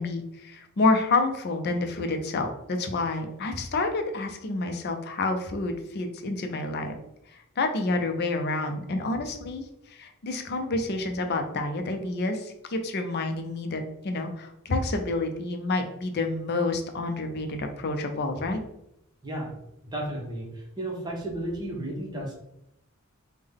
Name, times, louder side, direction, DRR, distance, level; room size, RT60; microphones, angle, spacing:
voice 1, 0.0-6.9 7.3-9.6 9.9-18.6, left 2 dB, 50° left, 5 dB, 0.5 m, -28 dB
voice 2, 19.2-19.6 19.9-22.3, right 1 dB, 20° right, -1 dB, 0.8 m, -33 dB
3.6 x 2.1 x 3.5 m, 0.81 s
head